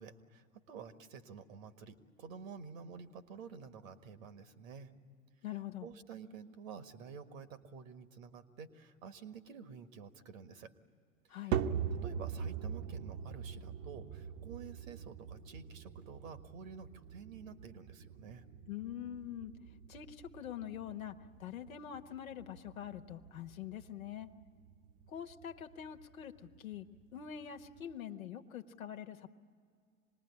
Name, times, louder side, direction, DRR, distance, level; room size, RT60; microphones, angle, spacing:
voice 1, 0.0-4.9 5.8-10.7 11.3-11.6 12.0-18.5, right 6 dB, 70° right, 10 dB, 1.7 m, -50 dB
voice 2, 5.4-5.9 11.3-11.6 18.7-19.5 19.9-24.3 25.1-26.3 26.6-29.3, left 10 dB, 80° left, 4 dB, 1.2 m, -44 dB
sound 1, 11.5-27.9, right 8 dB, 45° right, 1.0 m, -43 dB
26.0 x 20.0 x 9.8 m, 2.2 s
hypercardioid pair, 90°, 41 cm